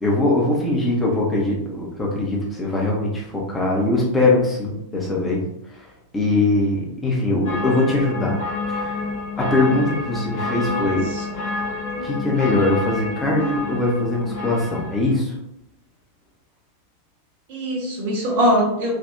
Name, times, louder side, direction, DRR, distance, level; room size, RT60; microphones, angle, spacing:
voice 1, 0.0-5.4 6.1-8.4 8.7-8.9 9.4-11.0 12.0-15.3, left 2 dB, 10° left, -3 dB, 1.0 m, -21 dB
sound 1, 7.4-15.1, left 3 dB, 50° left, 1.1 m, -29 dB
voice 2, 10.7-11.5 17.5-18.9, equal, 50° right, -3 dB, 0.9 m, -23 dB
3.4 x 2.6 x 2.7 m, 0.79 s
figure-of-eight pair, 90°, 0 cm